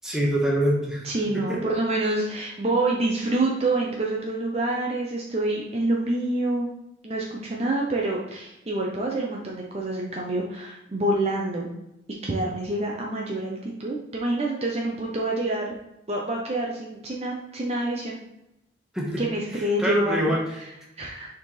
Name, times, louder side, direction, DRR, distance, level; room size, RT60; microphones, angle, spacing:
voice 1, 0.0-1.0 1.5-1.6 18.9-19.2 19.8-20.4, right 1 dB, 5° right, -4 dB, 1.4 m, -24 dB
voice 2, 1.0-6.7 7.0-11.7 12.2-15.7 16.1-18.2 19.2-21.3, right 2 dB, 35° right, -1 dB, 0.7 m, -27 dB
6.6 x 4.5 x 3.3 m, 0.87 s
head